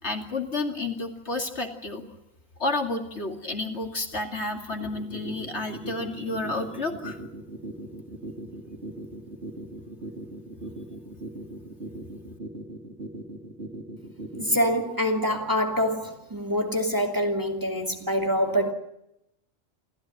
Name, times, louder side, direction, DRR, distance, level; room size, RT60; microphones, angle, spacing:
voice 1, 0.0-2.0 2.6-7.2, left 2 dB, 60° left, 2.8 m, -31 dB
sound 1, 4.7-14.7, right 2 dB, 55° right, 3.6 m, -38 dB
voice 2, 14.4-18.7, equal, 15° right, 2.7 m, -25 dB
28.5 x 15.0 x 9.3 m
omnidirectional pair, 1.3 m